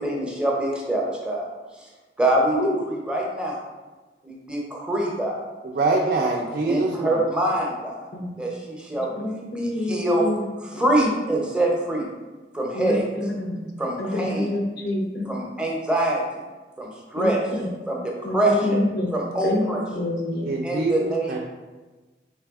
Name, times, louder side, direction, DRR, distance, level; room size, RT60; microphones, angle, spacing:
voice 1, 0.0-1.4 1.8-1.9 2.2-3.6 4.2-5.4 6.6-8.1 8.4-9.1 9.5-10.3 10.6-12.1 12.5-13.0 13.8-14.6 15.3-16.4 16.8-17.4 17.9-18.8 19.1-20.1 20.6-21.4, right 1 dB, 5° right, -2 dB, 0.6 m, -25 dB
voice 2, 5.6-7.2 20.4-21.0 21.3-21.4, right 3 dB, 55° right, -2 dB, 0.4 m, -24 dB
voice 3, 9.1-10.4 10.7-10.8 12.7-13.6 14.0-15.3 17.1-17.7 18.2-19.1 19.4-20.5, left 1 dB, 65° left, 1 dB, 0.7 m, -27 dB
3.9 x 3.2 x 3.5 m, 1.2 s
head